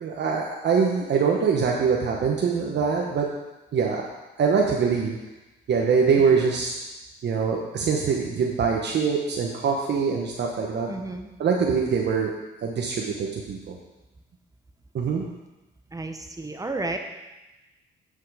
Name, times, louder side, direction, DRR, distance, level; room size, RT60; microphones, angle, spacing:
voice 1, 0.0-3.3 3.7-4.1 4.4-5.2 5.7-6.7 7.2-10.9 11.4-12.3 12.6-13.8 14.9-15.2, right 5 dB, 60° right, -1 dB, 1.1 m, -23 dB
voice 2, 10.9-11.3 15.9-17.0, right 2 dB, 15° right, 5 dB, 0.9 m, -32 dB
9.6 x 5.7 x 5.0 m, 1.1 s
cardioid pair, 90°, 20 cm